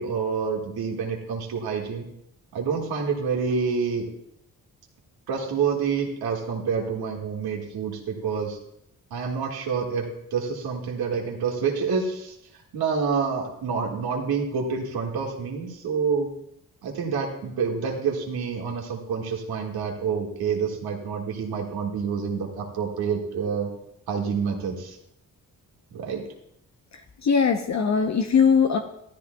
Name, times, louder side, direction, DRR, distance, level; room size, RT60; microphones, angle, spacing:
voice 1, 0.0-2.1 2.5-4.1 5.3-8.6 9.1-12.4 12.7-16.3 16.8-23.7 24.1-25.0 25.9-26.2, right 5 dB, 80° right, 0 dB, 1.9 m, -28 dB
voice 2, 27.2-28.8, left 6 dB, 45° left, 5 dB, 0.8 m, -20 dB
13.5 x 12.5 x 2.3 m, 0.78 s
cardioid pair, 60°, 37 cm